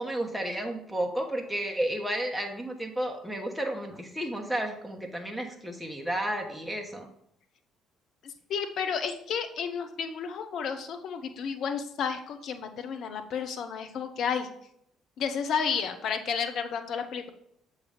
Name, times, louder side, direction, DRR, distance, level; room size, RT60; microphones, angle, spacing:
voice 1, 0.0-7.1, right 1 dB, 5° right, 1 dB, 1.2 m, -32 dB
voice 2, 8.2-14.5 15.2-17.3, left 6 dB, 55° left, 7 dB, 0.7 m, -32 dB
6.8 x 3.2 x 5.1 m, 0.70 s
figure-of-eight pair, 50°, 0 cm